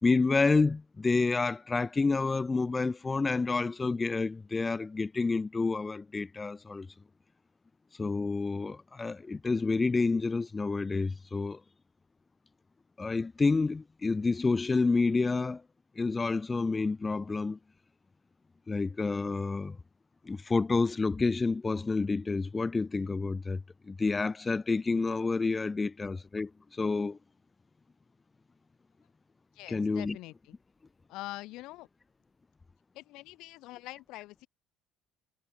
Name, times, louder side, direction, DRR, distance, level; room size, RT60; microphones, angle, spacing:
voice 1, 0.0-6.9 8.0-11.6 13.0-15.6 15.9-17.6 18.7-19.8 20.2-27.2 29.7-30.2, left 3 dB, 20° left, 3.2 m, -29 dB
voice 2, 29.5-30.6 31.1-31.9 32.9-34.5, left 19 dB, 75° left, 7.4 m, -44 dB
cardioid pair, 105°, 0 cm